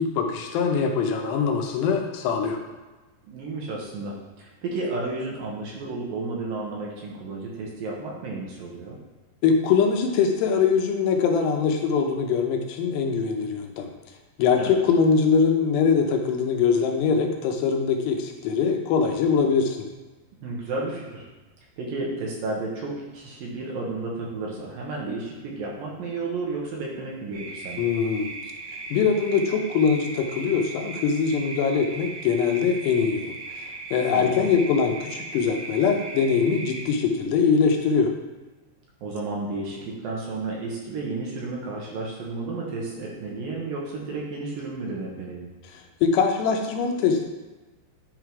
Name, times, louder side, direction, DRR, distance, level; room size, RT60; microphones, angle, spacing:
voice 1, 0.0-2.6 9.4-13.9 14.4-19.9 27.8-28.3 28.9-38.1 46.0-47.2, left 6 dB, 80° left, 3 dB, 2.9 m, -22 dB
voice 2, 3.2-9.0 14.6-14.8 20.4-21.2 21.8-27.8 34.1-34.5 39.0-45.5, right 3 dB, 65° right, -3 dB, 2.7 m, -32 dB
sound 1, 27.3-36.9, right 3 dB, 85° right, 4.3 m, -38 dB
10.5 x 3.8 x 4.7 m, 1.2 s
omnidirectional pair, 4.8 m